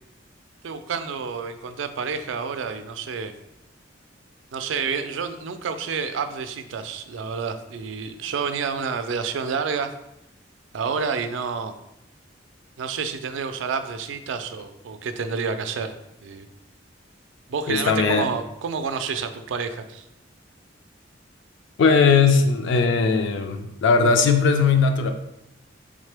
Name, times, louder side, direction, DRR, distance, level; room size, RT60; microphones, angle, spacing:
voice 1, 0.6-3.3 4.5-9.9 10.7-11.7 12.8-16.0 16.2-16.5 17.5-20.0, right 5 dB, 75° right, 9 dB, 0.4 m, -29 dB
voice 2, 17.7-18.2 21.8-25.1, left 5 dB, 70° left, 6 dB, 0.4 m, -19 dB
3.7 x 3.5 x 3.3 m, 0.84 s
head